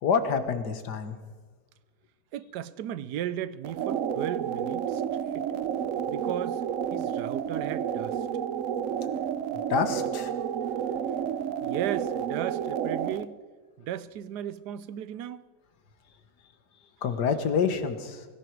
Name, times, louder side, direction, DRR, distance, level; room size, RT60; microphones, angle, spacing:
voice 1, 0.0-1.2 9.7-10.3 17.0-18.3, left 6 dB, 90° left, 1.9 m, -27 dB
voice 2, 2.3-5.0 5.3-5.5 6.1-6.6 6.9-8.1 10.4-10.5 11.6-13.3 13.9-15.5, right 11 dB, 85° right, 1.3 m, -35 dB
sound 1, 3.6-13.2, right 8 dB, 60° right, 0.9 m, -30 dB
18.0 x 16.0 x 4.7 m
omnidirectional pair, 1.7 m